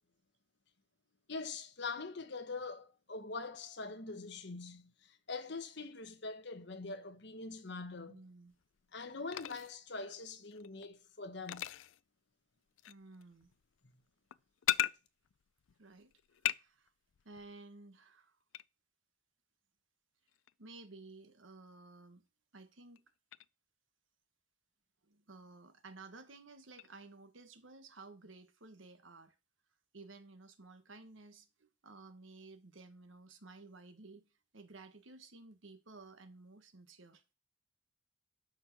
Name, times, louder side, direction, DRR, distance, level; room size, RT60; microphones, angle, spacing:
voice 1, 1.3-8.2 8.9-11.6, left 3 dB, 60° left, 1.3 m, -43 dB
voice 2, 8.1-8.5 12.9-13.5 15.8-16.1 16.5-16.9 17.2-18.4 20.6-22.2 22.5-23.0 25.0-29.3 29.9-37.2, right 3 dB, 80° right, 1.3 m, -55 dB
sound 1, 8.5-9.8 10.4-10.9 11.5-12.0 12.8-15.0 15.2-16.6 16.9-17.6 18.5-18.6 20.3-20.5 23.0-23.1 23.3-23.5 26.8-26.9, left 12 dB, 85° left, 0.4 m, -39 dB
12.0 x 4.6 x 6.0 m
head